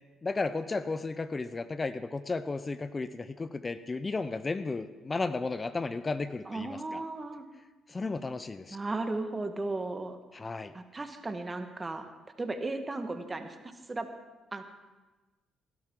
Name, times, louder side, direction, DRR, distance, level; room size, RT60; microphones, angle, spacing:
voice 1, 0.2-7.0 7.9-8.8 10.3-10.7, left 3 dB, 30° left, 12 dB, 0.6 m, -34 dB
voice 2, 6.4-7.4 8.7-10.2 10.7-12.1 12.4-13.5 13.9-14.1 14.5-14.6, right 2 dB, 25° right, 7 dB, 1.5 m, -35 dB
18.0 x 12.0 x 3.8 m, 1.2 s
supercardioid pair, 55°, 0 cm